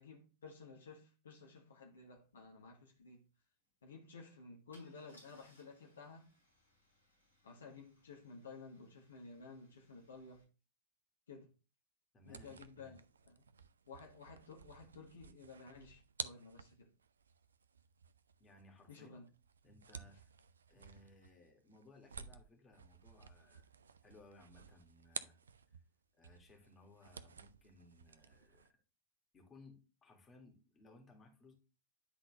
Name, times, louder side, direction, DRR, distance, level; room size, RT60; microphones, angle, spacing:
voice 1, 0.0-3.2 3.8-6.3 7.4-10.4 11.3-11.5 12.2-13.0 13.3-13.5 13.9-16.9 18.9-19.3, left 4 dB, 65° left, 1.4 m, -54 dB
Car / Engine starting / Idling, 2.1-2.2 2.5-2.7 4.7-10.4, equal, 85° left, 3.6 m, -70 dB
voice 2, 12.1-13.0 18.4-19.2 19.6-20.3 20.7-23.6 24.0-25.4 25.7-25.8 26.1-28.7 29.3-31.5, left 2 dB, 20° left, 2.0 m, -62 dB
sound 1, 12.2-25.9 26.2-28.7, right 6 dB, 70° right, 0.4 m, -53 dB
9.9 x 3.9 x 3.3 m
figure-of-eight pair, 90°, 0 cm